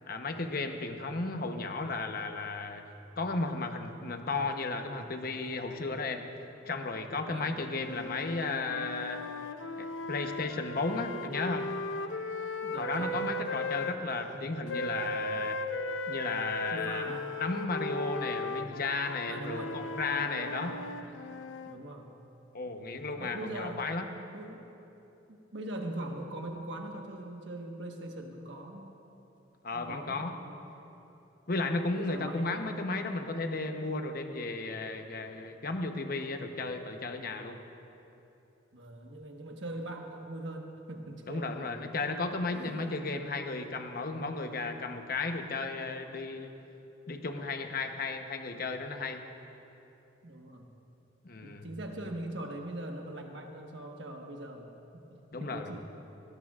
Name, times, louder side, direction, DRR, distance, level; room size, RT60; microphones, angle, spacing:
voice 1, 0.1-2.8 3.2-6.3 6.7-9.2 9.8-11.7 12.7-15.6 16.1-17.1 17.4-20.8 22.5-24.0 29.6-30.3 31.5-37.6 41.3-46.5 47.1-49.2 51.2-51.7 55.3-55.8, left 3 dB, 50° left, 5 dB, 0.9 m, -34 dB
voice 2, 7.3-7.7 12.6-13.8 16.7-17.4 19.3-20.8 21.7-22.1 23.2-23.9 24.3-24.7 25.3-28.9 29.7-30.8 31.9-32.8 38.7-41.9 42.5-43.0 50.2-50.7 51.4-55.0 55.4-55.8, right 1 dB, 70° right, 2 dB, 1.4 m, -42 dB
sound 1, 7.7-14.0 14.7-21.8, left 2 dB, 85° left, 0.6 m, -37 dB
19.0 x 17.5 x 2.5 m, 2.9 s
head